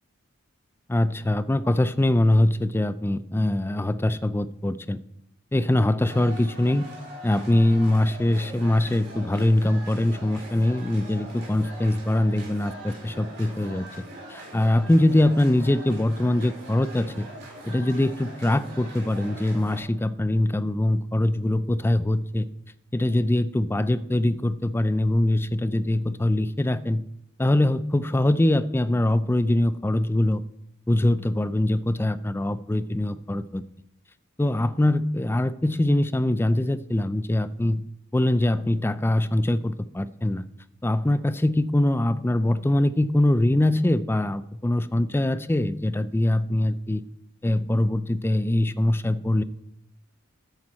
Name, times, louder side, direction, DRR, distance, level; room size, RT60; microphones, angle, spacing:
voice 1, 0.9-5.0 5.5-6.9 7.2-13.9 14.3-17.3 17.6-22.5 22.9-27.0 27.4-30.4 30.9-33.6 34.4-37.8 38.1-40.5 40.8-47.0 47.4-49.4, left 1 dB, 10° left, 15 dB, 0.4 m, -23 dB
sound 1, 6.0-19.8, right 1 dB, 55° right, 4.9 m, -42 dB
13.5 x 9.0 x 4.3 m, 0.81 s
head